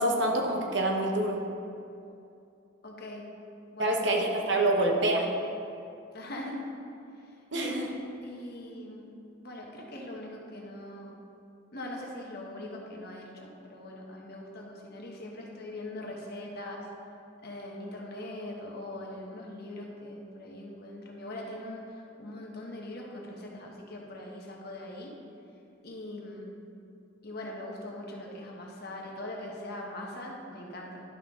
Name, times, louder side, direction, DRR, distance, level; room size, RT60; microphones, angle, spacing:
voice 1, 0.0-1.4 3.8-5.2 7.5-7.9, right 1 dB, 60° right, 1 dB, 1.0 m, -26 dB
voice 2, 2.8-3.3 3.7-4.1 6.1-6.6 7.5-7.8 8.2-9.1 9.4-11.1 11.7-16.9 17.4-25.1 25.8-26.5 27.2-31.0, left 1 dB, 50° left, -1 dB, 1.2 m, -41 dB
11.0 x 5.8 x 3.7 m, 2.6 s
head